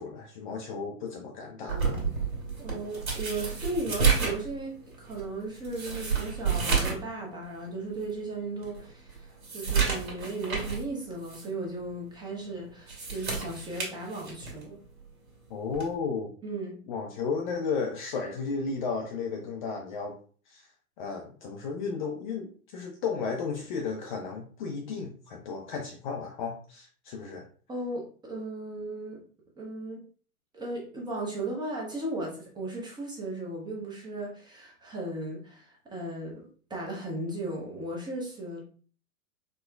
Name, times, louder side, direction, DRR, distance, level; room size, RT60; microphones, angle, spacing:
voice 1, 0.0-1.9 15.5-16.3 16.9-20.2 20.5-20.7 21.0-27.5, left 5 dB, 35° left, 2 dB, 0.4 m, -34 dB
sound 1, 1.7-7.1 7.4-7.5 8.1-8.2 8.6-10.9 11.2-11.5 12.7-14.6 15.7-16.0, right 5 dB, 70° right, 1.5 m, -30 dB
voice 2, 2.6-9.3 9.5-14.8 16.4-16.7 27.7-29.2 29.6-30.0 30.5-38.6, right 2 dB, 10° right, -2 dB, 0.6 m, -36 dB
4.2 x 2.1 x 2.2 m, 0.43 s
hypercardioid pair, 105°, 43 cm